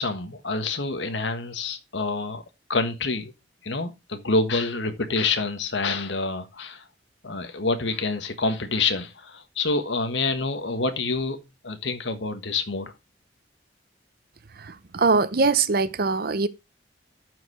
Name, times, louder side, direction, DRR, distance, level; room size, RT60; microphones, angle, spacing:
voice 1, 0.0-2.4 2.7-3.3 3.6-6.8 7.2-11.4 11.6-12.9, left 3 dB, 80° left, 1.5 m, -27 dB
voice 2, 14.6-16.5, right 4 dB, 55° right, 0.8 m, -22 dB
12.0 x 4.9 x 4.8 m
head